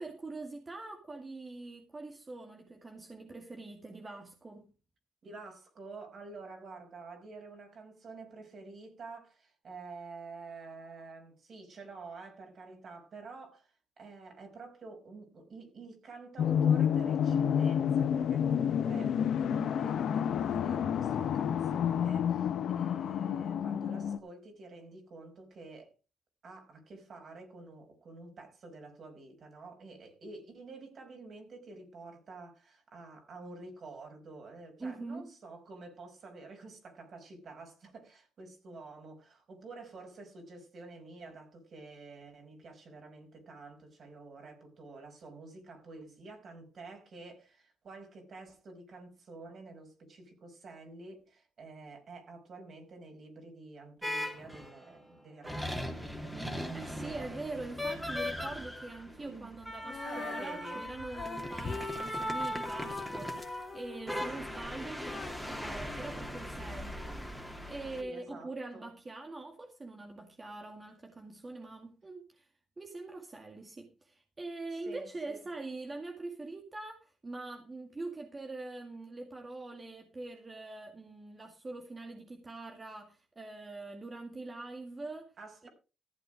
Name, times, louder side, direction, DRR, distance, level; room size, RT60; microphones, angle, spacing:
voice 1, 0.0-4.7 34.8-35.3 56.7-67.4 67.7-72.5 72.8-85.3 85.6-85.7, right 2 dB, 30° right, 2.0 m, -43 dB
voice 2, 5.2-25.9 26.4-57.7 59.1-59.5 60.0-60.9 64.1-64.5 64.8-65.0 68.0-68.9 74.8-75.4 85.4-85.7, right 3 dB, 55° right, 5.2 m, -49 dB
sound 1, 16.4-24.2, left 8 dB, 70° left, 1.1 m, -29 dB
sound 2, 54.0-54.8 55.4-68.0, equal, 5° right, 2.9 m, -39 dB
Female singing, 59.8-66.9 67.5-67.6, left 5 dB, 50° left, 2.8 m, -45 dB
14.5 x 7.8 x 5.0 m
supercardioid pair, 65°, 0 cm